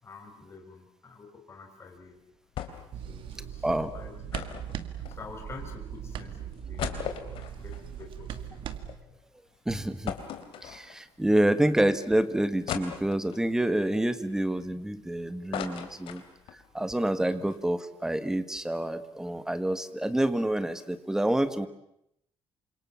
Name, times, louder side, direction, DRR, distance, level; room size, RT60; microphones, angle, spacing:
voice 1, 0.0-2.2 3.0-4.4 4.9-7.1 7.5-8.6 9.1-9.2 11.2-11.4, left 4 dB, 25° left, 3 dB, 5.3 m, -48 dB
sound 1, 2.6-3.0 3.3-3.4 4.3-5.6 6.1-6.2 6.5-9.0 9.4-9.5 10.1-11.2 11.7-11.8 12.7-13.5 14.1-15.0 15.3-16.6 17.0-17.1 17.3-17.6, left 9 dB, 70° left, 3.7 m, -38 dB
sound 2, 2.9-8.9, right 9 dB, 65° right, 2.0 m, -39 dB
voice 2, 9.6-10.1 10.6-16.2 16.7-21.7, right 1 dB, 5° right, 11 dB, 1.6 m, -27 dB
29.0 x 26.5 x 7.2 m, 0.77 s
cardioid pair, 150°, 9 cm